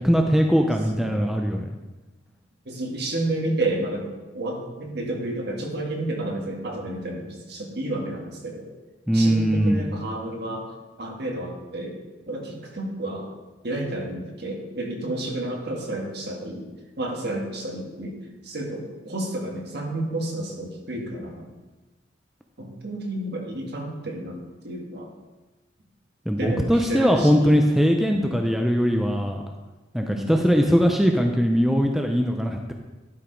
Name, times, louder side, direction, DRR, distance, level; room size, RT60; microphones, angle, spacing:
voice 1, 0.0-1.7 9.1-9.8 26.3-29.4 29.9-32.7, equal, ahead, 3 dB, 0.5 m, -21 dB
voice 2, 2.6-4.1 4.3-8.7 9.1-10.7 11.0-12.0 12.3-13.3 13.6-16.7 17.0-18.2 18.4-21.5 22.6-25.1 26.4-27.6 28.0-28.4 30.0-30.4, right 1 dB, 55° right, 1 dB, 1.7 m, -31 dB
12.0 x 4.9 x 5.1 m, 1.1 s
head